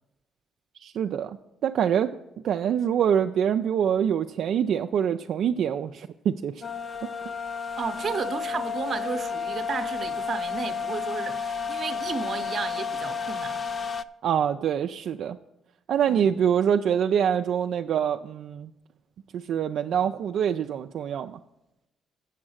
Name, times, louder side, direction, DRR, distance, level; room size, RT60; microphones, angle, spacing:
voice 1, 0.8-1.4 1.6-2.2 2.4-6.6 7.0-7.1 14.2-15.4 15.9-18.7 19.3-21.4, right 8 dB, 70° right, 0.3 m, -25 dB
sound 1, 6.6-14.0, left 5 dB, 40° left, 0.3 m, -32 dB
voice 2, 7.8-13.6 16.1-16.3, right 5 dB, 45° right, 0.8 m, -33 dB
7.5 x 7.1 x 6.3 m
cardioid pair, 90°, 0 cm